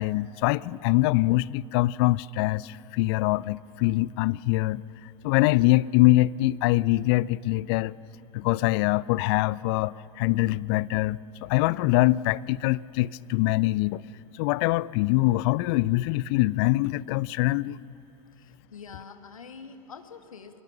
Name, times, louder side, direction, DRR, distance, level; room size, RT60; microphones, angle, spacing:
voice 1, 0.0-4.8 5.2-8.0 8.3-14.0 14.4-17.8, left 18 dB, 45° left, 22 dB, 0.5 m, -24 dB
voice 2, 18.4-20.6, left 5 dB, 75° left, 8 dB, 1.5 m, -45 dB
24.0 x 22.5 x 6.9 m, 2.7 s
figure-of-eight pair, 85°, 18 cm